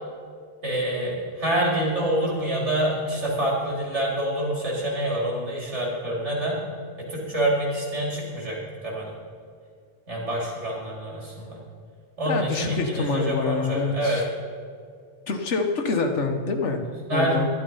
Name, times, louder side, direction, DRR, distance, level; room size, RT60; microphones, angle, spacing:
voice 1, 0.6-6.6 7.0-9.1 10.1-11.6 12.2-14.2 16.8-17.5, right 1 dB, 80° right, -4 dB, 4.1 m, -27 dB
voice 2, 12.3-14.3 15.3-16.8 17.1-17.5, left 4 dB, 85° left, 5 dB, 1.6 m, -26 dB
12.0 x 11.5 x 5.6 m, 2.2 s
omnidirectional pair, 1.2 m